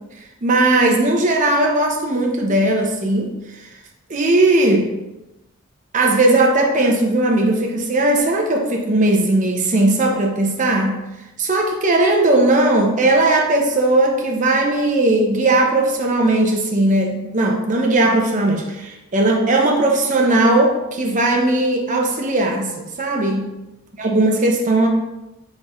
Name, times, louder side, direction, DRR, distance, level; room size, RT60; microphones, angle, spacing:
voice 1, 0.4-3.3 4.1-4.9 5.9-11.0 11.4-23.5 24.0-24.9, right 2 dB, 35° right, 2 dB, 0.6 m, -17 dB
4.5 x 4.5 x 2.4 m, 1.0 s
head